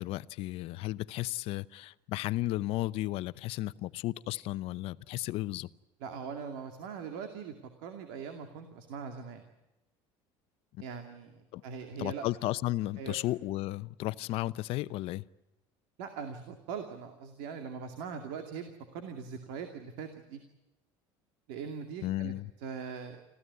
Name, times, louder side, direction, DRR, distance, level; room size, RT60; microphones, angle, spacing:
voice 1, 0.0-5.7 10.8-10.9 11.5-11.6 12.0-15.2 22.0-22.5, left 17 dB, 65° left, 0.7 m, -34 dB
voice 2, 6.0-7.6 7.8-9.4 10.8-12.2 13.0-13.2 16.0-20.4 21.5-22.3 22.6-23.2, right 6 dB, 85° right, 2.4 m, -41 dB
26.0 x 15.5 x 9.6 m
cardioid pair, 125°, 11 cm